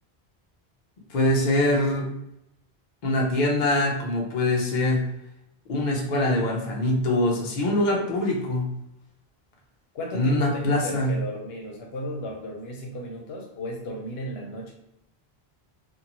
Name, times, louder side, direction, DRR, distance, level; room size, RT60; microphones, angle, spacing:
voice 1, 1.1-2.1 3.0-5.0 5.7-8.7 10.1-11.1, left 1 dB, 55° left, -1 dB, 0.7 m, -23 dB
voice 2, 9.9-14.7, left 1 dB, 80° left, 0 dB, 0.9 m, -34 dB
2.6 x 2.5 x 2.8 m, 0.83 s
omnidirectional pair, 1.0 m